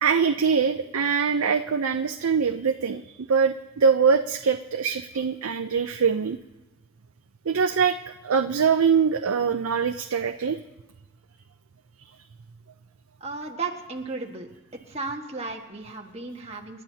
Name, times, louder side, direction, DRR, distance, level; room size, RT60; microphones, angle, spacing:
voice 1, 0.0-6.4 7.5-8.0 8.2-10.6, right 6 dB, 85° right, 5 dB, 0.6 m, -23 dB
voice 2, 13.2-14.5 14.9-16.8, right 3 dB, 30° right, 0 dB, 1.6 m, -34 dB
29.0 x 12.0 x 2.9 m, 1.1 s
head